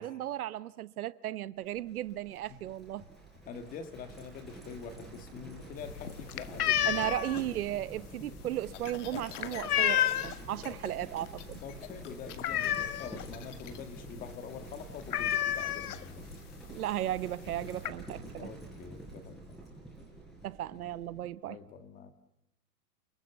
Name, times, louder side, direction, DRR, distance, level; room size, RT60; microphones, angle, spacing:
voice 1, 0.0-3.0 6.9-11.6 16.7-18.5 20.4-21.6, right 13 dB, 65° right, 1.0 m, -35 dB
Livestock farm animals working animals, 1.6-21.3, right 2 dB, ahead, 4.8 m, -48 dB
voice 2, 3.5-7.0 10.6-10.8 11.6-16.3 17.8-17.9 18.4-19.6 21.5-22.1, left 6 dB, 15° left, 1.7 m, -45 dB
sound 1, 5.8-10.5 10.9-11.2 11.5-11.6 12.0-13.3 13.7-13.8 14.1-14.3 14.6-14.7 15.1-16.3 17.1-17.2 17.5-17.9, left 11 dB, 65° left, 1.6 m, -30 dB
sound 2, 8.7-10.3 10.6-10.9 11.2-13.8, left 10 dB, 50° left, 2.6 m, -46 dB
29.5 x 19.5 x 7.1 m
hypercardioid pair, 165°, 48 cm